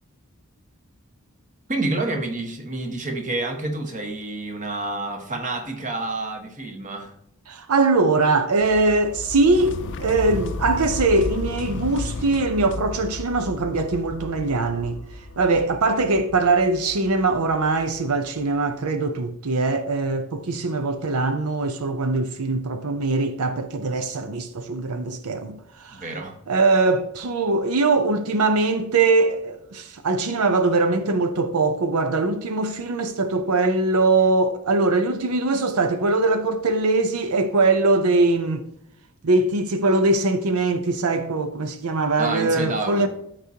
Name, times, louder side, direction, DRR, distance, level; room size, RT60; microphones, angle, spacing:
voice 1, 1.7-7.1 25.9-26.4 42.2-43.1, right 2 dB, 35° right, 1.3 m, -28 dB
voice 2, 7.5-15.0 15.4-26.0 26.5-38.6 39.2-43.1, right 3 dB, 90° right, 0.7 m, -22 dB
sound 1, 8.6-18.5, left 1 dB, 85° left, 0.8 m, -35 dB
sound 2, 9.5-13.3, left 3 dB, 55° left, 0.5 m, -35 dB
12.5 x 4.9 x 2.8 m
head